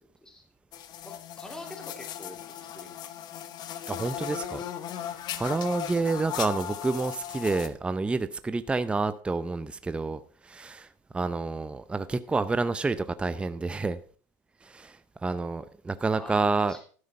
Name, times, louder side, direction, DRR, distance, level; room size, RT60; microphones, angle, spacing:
sound 1, 0.7-7.7, left 10 dB, 45° left, 1.0 m, -37 dB
voice 1, 1.0-3.2 16.2-16.8, left 1 dB, 5° left, 2.5 m, -45 dB
voice 2, 3.9-4.6 5.4-10.9 11.1-14.0 14.6-16.8, right 3 dB, 10° right, 0.6 m, -29 dB
13.0 x 5.7 x 5.3 m
supercardioid pair, 110°, 10 cm